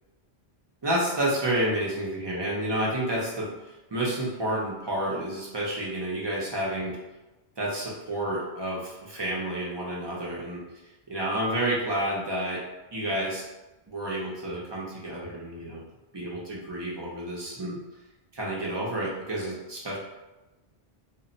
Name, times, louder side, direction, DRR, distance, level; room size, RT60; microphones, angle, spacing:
voice 1, 0.8-7.0 7.6-10.6 11.1-12.6 12.9-13.4 13.9-15.8 16.1-17.8 18.3-20.0, right 1 dB, 30° right, -4 dB, 0.5 m, -30 dB
2.1 x 2.1 x 3.8 m, 1.1 s
omnidirectional pair, 1.1 m